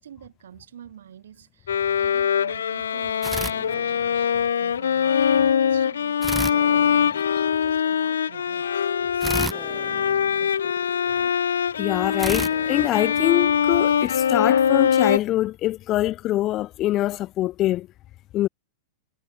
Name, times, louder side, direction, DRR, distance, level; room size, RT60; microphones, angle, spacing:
voice 1, 0.0-10.8 11.0-11.3, right 9 dB, 65° right, 5.1 m, -48 dB
Bowed string instrument, 1.7-15.2, left 8 dB, 70° left, 1.2 m, -22 dB
sound 1, 3.2-4.4 6.2-7.6 9.2-10.9 12.2-13.7, right 4 dB, 10° right, 4.1 m, -34 dB
voice 2, 11.8-17.9 18.3-18.5, left 15 dB, 35° left, 0.4 m, -24 dB
figure-of-eight pair, 95°, 0 cm